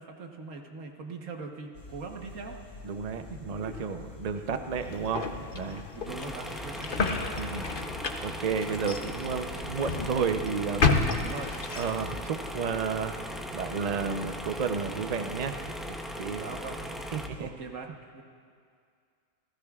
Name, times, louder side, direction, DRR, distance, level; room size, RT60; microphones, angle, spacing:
voice 1, 0.0-2.8 3.3-3.9 5.9-7.0 8.0-8.2 9.0-9.1 9.5-9.6 11.2-11.8 16.4-16.8 17.4-17.9 18.1-18.2, right 4 dB, 75° right, 2 dB, 1.5 m, -41 dB
sound 1, 1.7-17.5, left 4 dB, 65° left, 2.1 m, -47 dB
voice 2, 2.8-5.3 5.5-5.9 7.4-7.8 8.2-10.9 11.8-16.4 17.1-17.5, right 6 dB, 40° right, 7 dB, 0.6 m, -32 dB
sound 2, 4.7-12.2, left 4 dB, 45° left, 0.9 m, -32 dB
sound 3, 6.1-17.3, equal, ahead, 0.3 m, -39 dB
29.0 x 15.0 x 2.4 m, 2.2 s
omnidirectional pair, 1.4 m